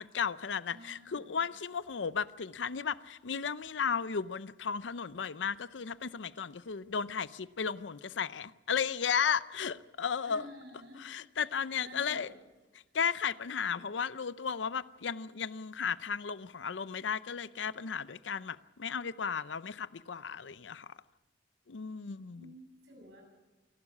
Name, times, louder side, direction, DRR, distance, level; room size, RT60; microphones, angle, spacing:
voice 1, 0.0-10.5 10.9-12.3 12.9-20.9 21.7-22.5, left 6 dB, 85° left, 0.6 m, -34 dB
voice 2, 0.7-1.4 10.3-11.1 11.6-12.4 13.7-13.9 22.3-23.2, equal, 75° right, 7.1 m, -51 dB
27.5 x 12.0 x 8.5 m
head